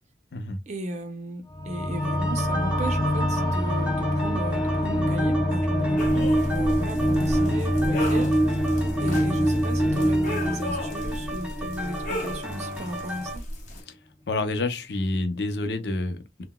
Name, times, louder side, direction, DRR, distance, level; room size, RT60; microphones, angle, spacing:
voice 1, 0.7-8.6 9.0-13.4, right 1 dB, 40° right, 0.6 m, -35 dB
sound 1, 1.5-12.4, equal, 25° left, 0.5 m, -25 dB
sound 2, 2.0-13.4, equal, 5° right, 0.8 m, -36 dB
sound 3, 6.0-13.8, left 1 dB, 45° left, 0.9 m, -35 dB
voice 2, 14.3-16.4, left 2 dB, 65° left, 0.6 m, -28 dB
3.8 x 2.1 x 2.2 m
head